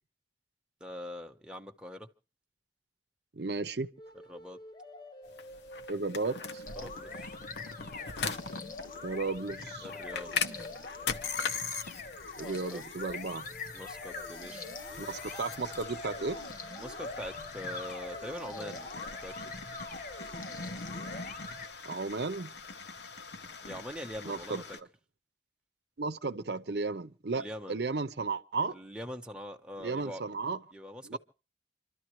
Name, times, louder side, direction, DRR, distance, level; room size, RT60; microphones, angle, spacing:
voice 1, 0.8-2.1 4.3-4.6 6.7-7.4 9.8-10.5 12.4-12.8 13.7-14.7 16.8-18.9 19.2-19.6 23.6-24.8 27.3-27.8 28.7-30.2 30.7-31.2, left 1 dB, 5° right, 1.0 m, -43 dB
voice 2, 3.3-3.9 5.9-6.6 9.0-9.9 12.4-13.5 15.0-16.4 21.8-22.5 24.3-24.6 26.0-28.7 29.8-30.6 31.0-31.2, right 3 dB, 65° right, 0.8 m, -34 dB
sound 1, 4.0-12.4 13.5-21.7, left 2 dB, 25° left, 0.9 m, -49 dB
sound 2, 5.3-24.8, left 5 dB, 75° left, 1.0 m, -41 dB
sound 3, 6.7-21.7, left 3 dB, 50° left, 1.3 m, -44 dB
27.5 x 12.5 x 3.1 m
head